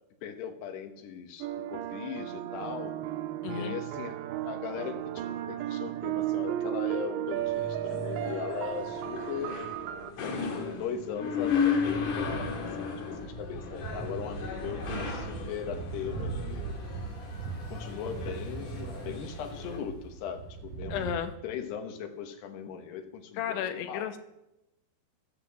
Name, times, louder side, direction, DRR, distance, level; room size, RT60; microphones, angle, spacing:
voice 1, 0.2-2.9 3.5-9.6 10.2-12.5 12.8-16.6 17.7-21.1 21.4-24.1, left 8 dB, 70° left, 6 dB, 3.2 m, -39 dB
sound 1, 1.4-10.1, right 13 dB, 85° right, 3.0 m, -34 dB
voice 2, 3.4-3.8 20.9-21.3 23.4-24.2, left 9 dB, 85° left, 7 dB, 3.5 m, -33 dB
sound 2, 7.4-19.8, left 5 dB, 50° left, 3.4 m, -35 dB
sound 3, 11.4-21.1, right 4 dB, 50° right, 5.3 m, -40 dB
13.5 x 12.5 x 7.4 m, 0.92 s
omnidirectional pair, 5.2 m